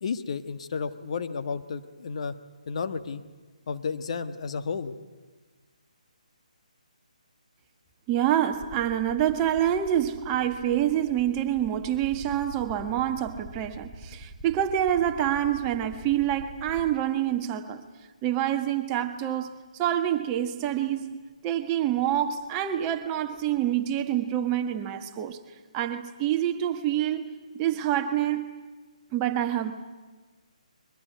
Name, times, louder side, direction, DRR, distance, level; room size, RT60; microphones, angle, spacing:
voice 1, 0.0-2.3 2.7-3.2 3.7-4.9, left 5 dB, 50° left, 1.4 m, -32 dB
voice 2, 8.1-17.8 18.2-21.2 21.4-25.4 25.7-28.5 29.1-29.7, right 11 dB, 20° right, 1.4 m, -27 dB
sound 1, 8.5-17.3 18.4-18.5 20.7-20.8 21.0-23.6, right 1 dB, 5° right, 2.8 m, -46 dB
22.5 x 21.5 x 9.3 m
figure-of-eight pair, 145°, 4 cm